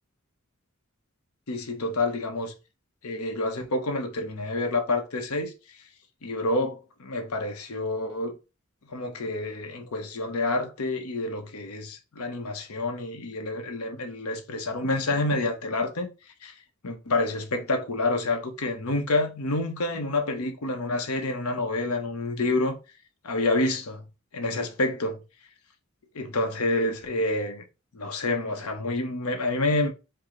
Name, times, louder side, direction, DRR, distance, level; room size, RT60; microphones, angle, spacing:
voice 1, 1.5-2.5 3.0-5.5 6.2-8.3 8.9-16.1 16.4-16.5 16.8-22.8 23.2-24.1 24.3-25.2 26.1-27.6 27.9-29.9, left 2 dB, 90° left, 0.8 m, -28 dB
4.7 x 2.1 x 3.7 m
head